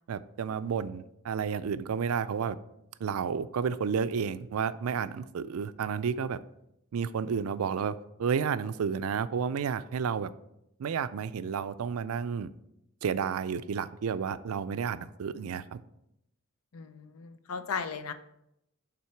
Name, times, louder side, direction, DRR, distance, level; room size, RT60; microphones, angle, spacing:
voice 1, 0.1-2.6 3.0-6.4 6.9-10.3 10.8-12.5 13.0-15.8, right 6 dB, 90° right, 14 dB, 0.4 m, -31 dB
voice 2, 16.7-18.1, left 5 dB, 90° left, 11 dB, 0.6 m, -36 dB
8.5 x 3.9 x 4.5 m, 0.81 s
head